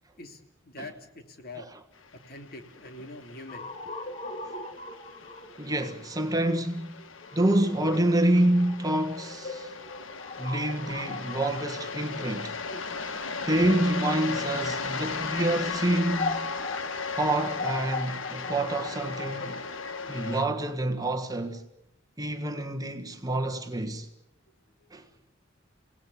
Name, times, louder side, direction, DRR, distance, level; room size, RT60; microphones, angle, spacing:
voice 1, 0.2-1.7 2.3-3.7 24.8-24.9, left 2 dB, 50° left, 3.0 m, -44 dB
sound 1, 2.1-20.4, left 4 dB, 85° left, 1.6 m, -37 dB
sound 2, 3.5-13.3 14.1-21.0, left 3 dB, 35° left, 2.7 m, -40 dB
voice 2, 5.6-7.0 7.3-9.7 10.4-12.6 13.5-16.5 17.1-19.6 20.1-21.6 22.2-24.1 24.9-25.1, right 1 dB, 20° right, 1.5 m, -27 dB
29.0 x 17.5 x 8.5 m
head